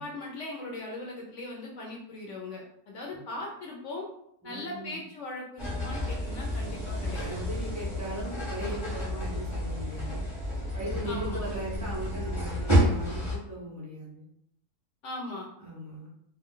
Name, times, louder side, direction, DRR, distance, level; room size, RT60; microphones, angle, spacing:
voice 1, 0.0-4.1 4.4-7.4 11.1-11.4 15.0-15.5, left 2 dB, 65° left, -1 dB, 0.8 m, -39 dB
voice 2, 4.4-4.9 7.0-10.2 10.7-14.2 15.6-16.1, right 1 dB, 25° right, -5 dB, 0.3 m, -38 dB
sound 1, 5.6-13.4, equal, 20° left, 0.9 m, -30 dB
2.5 x 2.3 x 3.6 m, 0.72 s
omnidirectional pair, 1.6 m